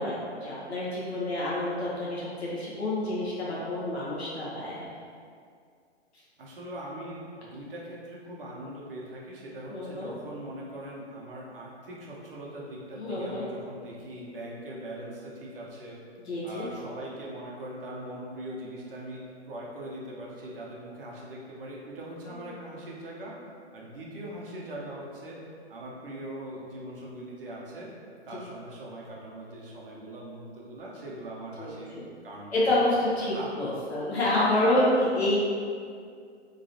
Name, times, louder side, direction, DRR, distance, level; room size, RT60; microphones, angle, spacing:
voice 1, 0.0-4.9 9.7-10.1 13.0-13.5 16.2-16.7 22.3-22.4 31.6-32.0 32.5-35.4, left 1 dB, 65° left, -7 dB, 1.0 m, -28 dB
voice 2, 6.4-16.0 16.4-23.4 23.7-25.4 25.7-27.9 28.3-31.9 32.2-32.9 33.3-33.5, right 1 dB, 50° right, -4 dB, 0.8 m, -41 dB
3.0 x 2.6 x 2.7 m, 2.2 s
figure-of-eight pair, 120°, 35 cm